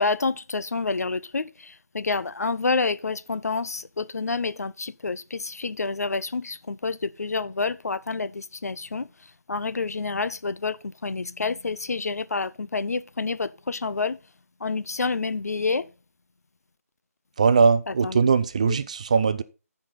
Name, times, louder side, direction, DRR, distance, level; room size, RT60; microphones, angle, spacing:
voice 1, 0.0-9.1 9.5-14.2 14.6-15.9 17.9-18.3 18.6-18.8, left 4 dB, 75° left, 0.6 m, -28 dB
voice 2, 17.4-19.4, right 5 dB, 25° right, 0.3 m, -20 dB
13.5 x 4.9 x 3.8 m
figure-of-eight pair, 160°, 9 cm